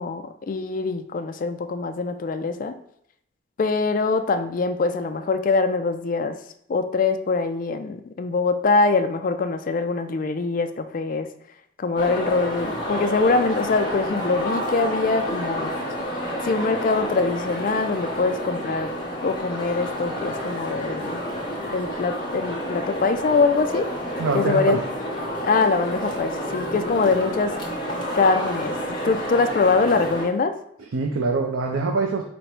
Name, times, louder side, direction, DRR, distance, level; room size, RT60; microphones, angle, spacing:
voice 1, 0.0-2.8 3.6-6.4 6.7-11.3 11.8-15.7 16.4-18.9 19.2-21.2 21.7-23.9 24.3-24.8 25.4-27.6 28.1-28.8 29.0-30.6, left 4 dB, 45° left, 9 dB, 0.3 m, -23 dB
sound 1, 12.0-30.3, equal, 25° left, 0.8 m, -29 dB
voice 2, 24.2-24.8 30.9-32.2, right 3 dB, 80° right, 1 dB, 0.5 m, -24 dB
5.1 x 2.1 x 4.3 m, 0.72 s
head